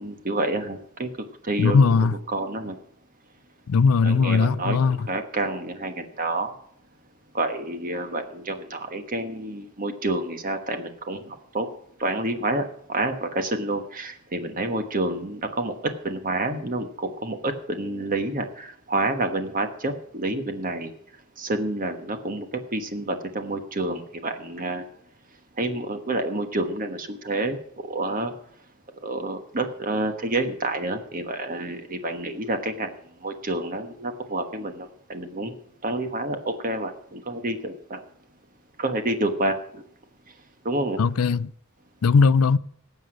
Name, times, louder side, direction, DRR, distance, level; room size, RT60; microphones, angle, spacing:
voice 1, 0.0-2.8 4.0-6.5 7.3-11.7 12.0-15.7 16.0-20.9 21.4-24.8 25.6-28.3 29.0-35.5 35.8-38.0 38.8-39.8 40.6-41.0, right 2 dB, 40° right, 1.3 m, -29 dB
voice 2, 1.6-2.1 3.7-5.0 41.0-41.5 42.0-42.6, left 4 dB, 75° left, 0.5 m, -19 dB
19.0 x 7.9 x 6.3 m
head